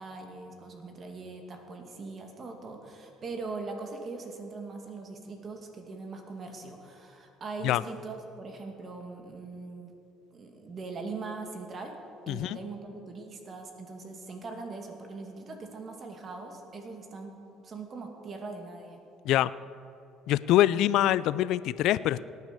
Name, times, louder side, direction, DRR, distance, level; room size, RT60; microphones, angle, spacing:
voice 1, 0.0-9.9 10.3-11.9 12.3-17.4 17.6-19.0, right 3 dB, 40° right, 3 dB, 2.2 m, -41 dB
voice 2, 12.3-12.6 19.3-19.5 20.3-22.2, left 13 dB, 70° left, 18 dB, 0.3 m, -24 dB
18.0 x 9.4 x 6.8 m, 2.6 s
cardioid pair, 105°, 0 cm